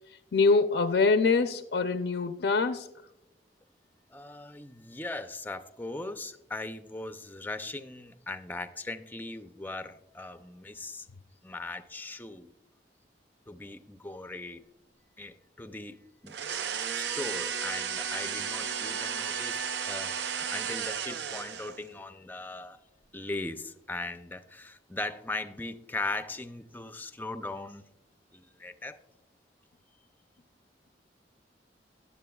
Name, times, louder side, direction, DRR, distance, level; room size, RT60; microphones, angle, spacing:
voice 1, 0.3-2.9, left 4 dB, 75° left, 0.4 m, -24 dB
voice 2, 4.1-11.1 11.4-12.5 13.5-14.6 15.2-16.0 16.2-16.3 16.9-22.8 23.1-27.8 28.3-29.0, left 2 dB, 10° left, 0.4 m, -39 dB
sound 1, 16.3-21.9, right 7 dB, 75° right, 0.5 m, -34 dB
14.5 x 10.0 x 2.3 m
head